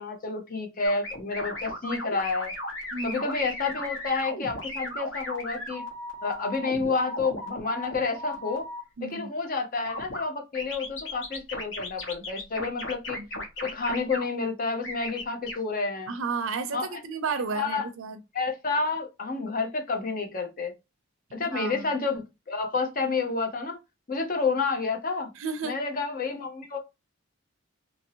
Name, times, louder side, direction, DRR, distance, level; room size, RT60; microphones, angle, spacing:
voice 1, 0.0-2.5 3.0-5.8 6.2-8.7 9.0-13.2 13.6-16.1 16.7-17.0 17.5-17.9 18.3-20.7 21.3-23.8 24.1-25.3 25.6-26.8, left 4 dB, 40° left, 0.7 m, -29 dB
sound 1, 0.8-8.8 9.9-10.2 10.5-14.2 14.8-15.5, left 1 dB, 60° left, 1.3 m, -36 dB
voice 2, 2.9-3.2 9.0-9.3 12.6-12.7 13.2-13.3 16.1-18.2 21.4-21.9 25.4-25.8, right 4 dB, 70° right, 0.5 m, -32 dB
2.9 x 2.7 x 2.8 m
head